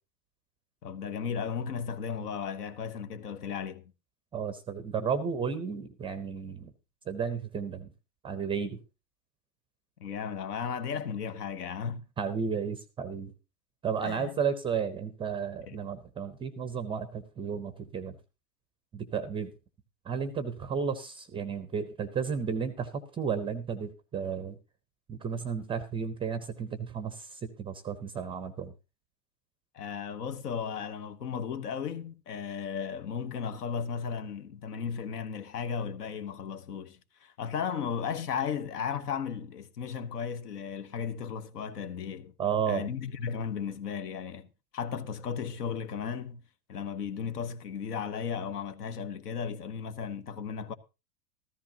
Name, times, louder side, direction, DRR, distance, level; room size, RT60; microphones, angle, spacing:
voice 1, 0.8-3.8 10.0-12.0 14.0-14.3 15.6-15.8 29.7-42.3 42.7-44.5 44.7-46.4 46.7-50.7, left 7 dB, 70° left, 1.2 m, -35 dB
voice 2, 4.3-6.7 7.1-7.9 8.2-8.8 12.2-13.3 13.8-18.2 18.9-19.5 20.1-24.6 25.1-28.7 42.4-42.9, right 6 dB, 10° right, 0.5 m, -33 dB
14.0 x 13.5 x 2.8 m
hypercardioid pair, 115°, 50 cm